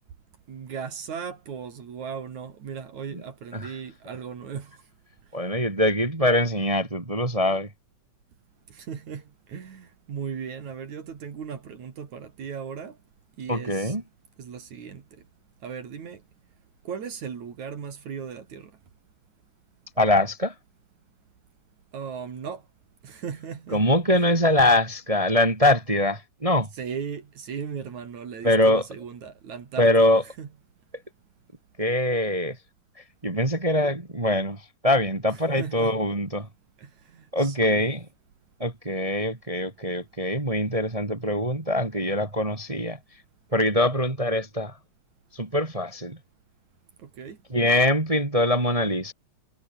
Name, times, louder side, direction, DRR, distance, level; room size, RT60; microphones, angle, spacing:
voice 1, 0.5-4.8 8.7-9.2 9.5-13.0 13.4-14.0 14.4-15.0 15.6-16.2 16.9-18.7 21.9-22.6 23.0-23.8 24.1-24.3 26.8-30.5 35.6-36.0 36.8-37.9 47.0-47.4, right 7 dB, 70° right, 4.1 m, -37 dB
voice 2, 5.3-7.7 13.5-14.0 20.0-20.5 23.7-26.7 28.4-28.8 29.8-30.2 31.8-32.6 33.2-36.5 37.3-38.0 38.6-43.0 43.5-44.7 45.3-46.2 47.5-49.1, left 1 dB, 15° right, 1.7 m, -23 dB
omnidirectional pair, 3.4 m